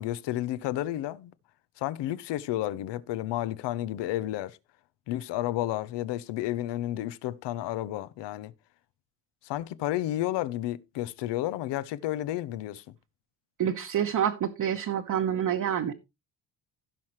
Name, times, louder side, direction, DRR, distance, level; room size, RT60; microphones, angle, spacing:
voice 1, 0.0-1.3 1.8-4.6 5.1-8.5 9.4-12.8, left 14 dB, 75° left, 0.8 m, -31 dB
voice 2, 13.6-15.9, right 9 dB, 45° right, 1.1 m, -27 dB
16.5 x 5.8 x 3.1 m
cardioid pair, 120°, 43 cm